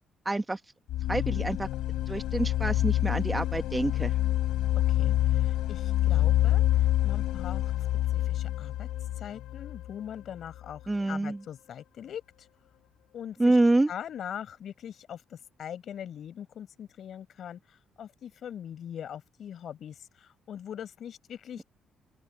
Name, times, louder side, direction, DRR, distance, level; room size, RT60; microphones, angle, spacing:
voice 1, 0.2-0.6 1.1-1.7 2.1-4.2 10.9-11.4 13.4-13.9, right 2 dB, 15° right, 1.2 m, -26 dB
sound 1, 0.9-10.7, left 14 dB, 90° left, 4.7 m, -27 dB
voice 2, 4.9-7.9 8.1-8.9 9.2-10.8 11.1-12.5 13.1-13.5 13.9-21.6, left 9 dB, 65° left, 6.6 m, -42 dB
open air
cardioid pair, 90°, 0 cm